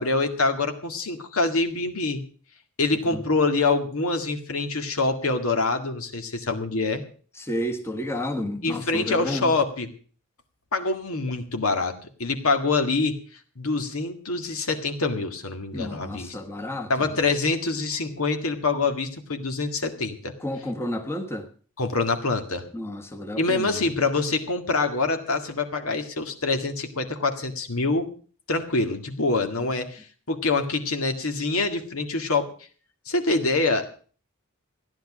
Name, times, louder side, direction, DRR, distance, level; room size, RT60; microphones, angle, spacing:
voice 1, 0.0-2.2 2.8-7.0 8.6-9.9 10.7-11.9 12.2-13.1 13.6-16.4 16.9-20.3 21.8-22.6 23.4-28.1 28.5-32.5 33.1-33.9, left 3 dB, 65° left, 6 dB, 2.0 m, -25 dB
voice 2, 7.4-9.5 15.7-17.1 20.4-21.5 22.7-23.8, left 1 dB, 10° left, 4 dB, 1.4 m, -31 dB
15.0 x 10.5 x 6.2 m, 0.42 s
head